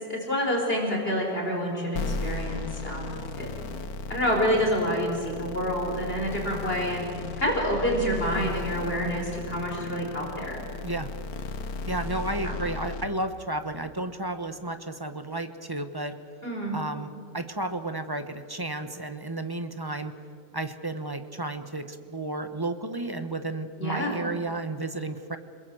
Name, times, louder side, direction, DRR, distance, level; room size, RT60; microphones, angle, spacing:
voice 1, 0.1-3.1 3.4-3.5 4.1-7.0 7.4-10.6 12.4-12.6 16.4-16.8 23.8-24.2, equal, 35° left, 0 dB, 5.3 m, -28 dB
sound 1, 1.9-13.0, left 3 dB, 60° left, 1.7 m, -35 dB
voice 2, 11.9-16.2 16.7-17.1 17.3-20.1 20.5-25.4, right 2 dB, 15° right, 9 dB, 1.0 m, -32 dB
28.0 x 21.0 x 7.8 m, 2.2 s
omnidirectional pair, 1.8 m